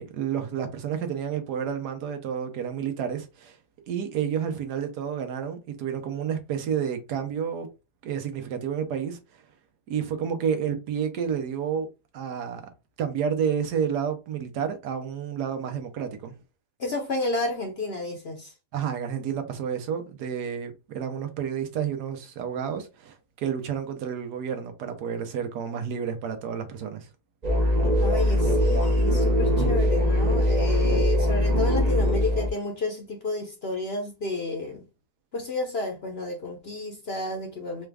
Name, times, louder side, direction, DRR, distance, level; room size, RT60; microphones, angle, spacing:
voice 1, 0.0-3.6 3.9-7.7 8.0-9.4 9.9-11.9 12.1-12.6 13.0-16.3 18.7-27.1, right 7 dB, 80° right, 1.3 m, -30 dB
voice 2, 16.8-18.5 28.0-34.8 35.3-37.9, left 3 dB, 55° left, 0.7 m, -31 dB
sound 1, 27.4-32.5, left 1 dB, 45° right, 0.6 m, -22 dB
4.3 x 2.4 x 3.3 m
omnidirectional pair, 1.7 m